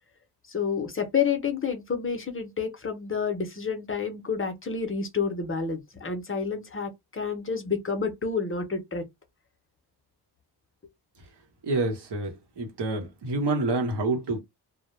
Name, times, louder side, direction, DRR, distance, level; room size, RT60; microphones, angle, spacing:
voice 1, 0.5-9.0, left 5 dB, 30° left, 0.5 m, -29 dB
voice 2, 11.6-14.4, right 2 dB, 90° right, 0.9 m, -28 dB
2.0 x 2.0 x 2.9 m
wide cardioid pair, 155°, 40 cm